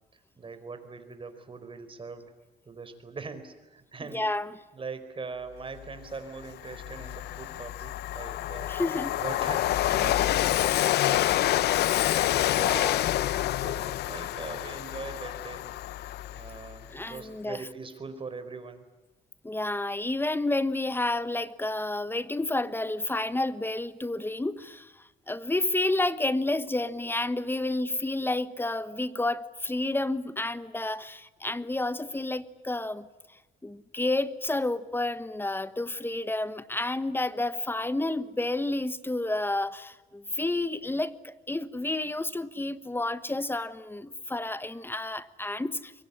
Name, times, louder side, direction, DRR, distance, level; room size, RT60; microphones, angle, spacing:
voice 1, 0.1-2.4 2.6-4.2 4.7-8.7 9.2-11.8 12.4-12.9 13.6-15.7 16.3-18.9, right 4 dB, 30° right, 10 dB, 4.7 m, -42 dB
voice 2, 4.1-4.5 8.7-9.1 12.5-13.1 16.9-17.6 19.4-24.9 25.3-33.1 33.6-45.9, left 2 dB, 15° left, 14 dB, 1.3 m, -30 dB
Train, 5.9-6.0 6.4-16.8, left 14 dB, 80° left, 0.8 m, -27 dB
24.5 x 23.0 x 9.8 m, 1.2 s
cardioid pair, 95°, 17 cm